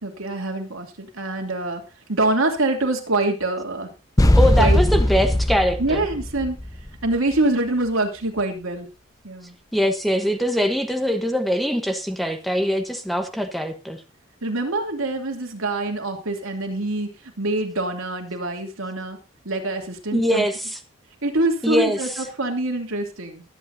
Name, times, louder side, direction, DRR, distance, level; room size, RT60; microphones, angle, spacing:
voice 1, 0.0-1.8 2.1-3.9 4.6-4.8 5.8-6.6 7.0-8.9 9.2-9.6 14.4-19.2 19.4-20.5 21.2-23.4, right 2 dB, 85° right, 3 dB, 2.8 m, -25 dB
sound 1, 4.2-7.1, left 1 dB, 15° left, 0.8 m, -19 dB
voice 2, 4.4-6.0 9.7-14.0 20.1-20.8 21.6-22.1, equal, ahead, 5 dB, 1.1 m, -22 dB
23.0 x 8.5 x 2.8 m, 0.29 s
head